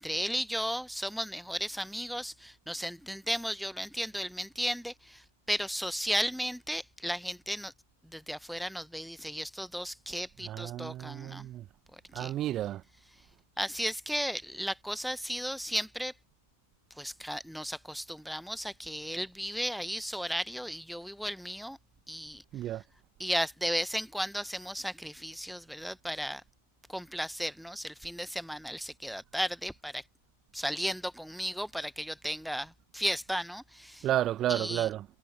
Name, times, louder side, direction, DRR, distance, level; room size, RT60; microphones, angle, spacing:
voice 1, 0.0-7.7 8.1-11.5 11.9-12.3 13.6-16.1 17.0-21.8 22.1-22.4 23.2-26.4 26.9-30.0 30.5-34.1 34.5-34.9, equal, ahead, 1.1 m, -35 dB
voice 2, 10.5-11.6 12.1-12.8 22.5-22.8 34.0-35.0, right 13 dB, 30° right, 1.0 m, -31 dB
figure-of-eight pair, 90°, 0 cm